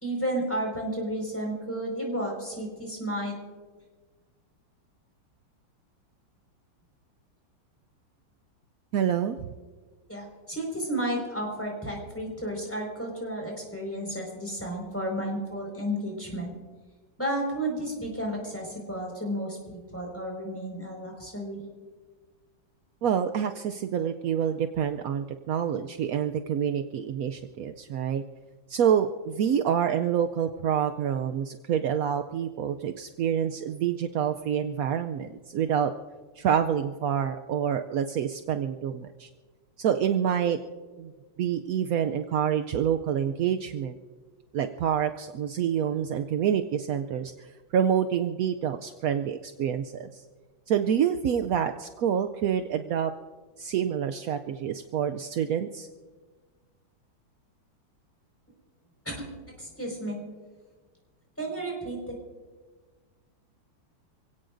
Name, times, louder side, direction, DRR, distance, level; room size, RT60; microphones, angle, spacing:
voice 1, 0.0-3.3 10.1-16.5 17.2-21.6 59.0-59.3 59.6-60.2 61.4-62.0, right 1 dB, 5° left, -1 dB, 4.9 m, -32 dB
voice 2, 8.9-9.5 23.0-28.2 28.7-35.9 36.4-39.3 39.8-40.6 41.0-41.1 41.4-44.0 44.5-50.2 50.7-53.1 53.6-55.9, right 8 dB, 75° right, 7 dB, 0.8 m, -27 dB
27.5 x 17.0 x 2.6 m, 1.4 s
omnidirectional pair, 2.1 m